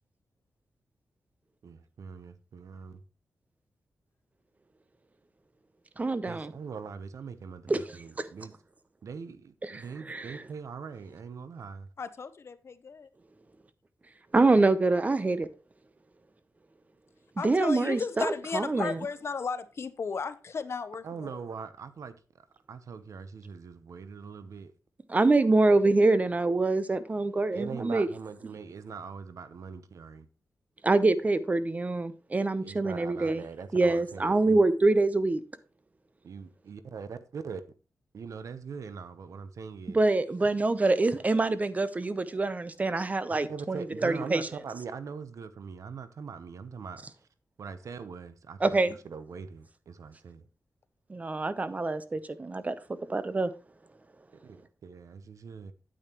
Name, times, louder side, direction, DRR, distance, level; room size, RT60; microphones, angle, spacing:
voice 1, 1.6-3.0 6.3-8.5 9.0-11.9 21.0-24.7 27.5-30.3 32.6-34.6 36.2-37.6 38.1-40.0 43.3-47.0 47.6-48.8 49.0-50.5 54.4-55.7, right 5 dB, 70° right, 0.8 m, -42 dB
voice 2, 6.0-6.5 7.7-8.3 9.6-10.4 14.3-15.5 17.4-18.3 18.5-18.9 25.1-28.1 30.8-33.4 33.7-35.4 39.9-44.5 48.6-49.0 51.1-52.7 53.1-53.5, right 2 dB, 25° right, 0.7 m, -25 dB
voice 3, 12.0-13.1 17.4-21.4, left 5 dB, 50° left, 0.8 m, -35 dB
8.9 x 8.8 x 3.0 m
wide cardioid pair, 115°, 6 cm